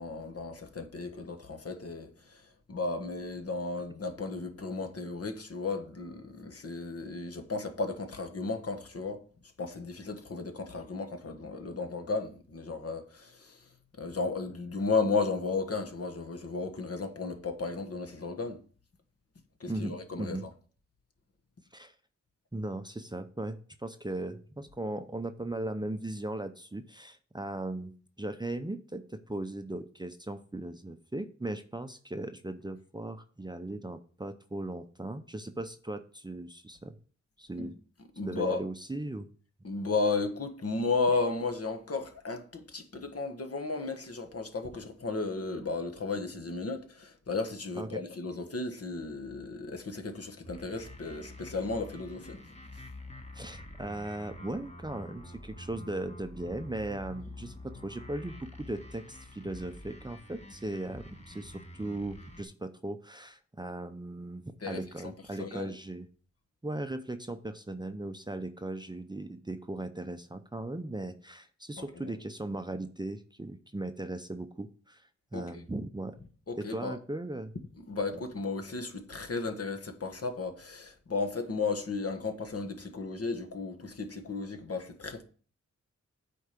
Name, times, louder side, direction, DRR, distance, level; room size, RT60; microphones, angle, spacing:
voice 1, 0.0-9.2 9.6-13.7 14.0-18.6 19.6-20.5 37.6-37.7 38.2-38.6 39.6-52.4 52.7-52.8 64.6-65.1 65.4-65.7 72.0-72.2 75.3-75.5 76.5-76.9 77.8-85.2, left 3 dB, 55° left, 1.4 m, -34 dB
voice 2, 19.7-20.5 21.7-21.9 22.5-27.9 28.2-36.9 37.4-37.7 38.2-39.3 47.8-48.0 53.3-66.1 66.6-76.2 76.5-77.5, right 2 dB, 15° right, 0.6 m, -38 dB
sound 1, 50.4-62.4, left 1 dB, 20° left, 1.4 m, -47 dB
8.2 x 4.6 x 6.7 m
wide cardioid pair, 90°, 29 cm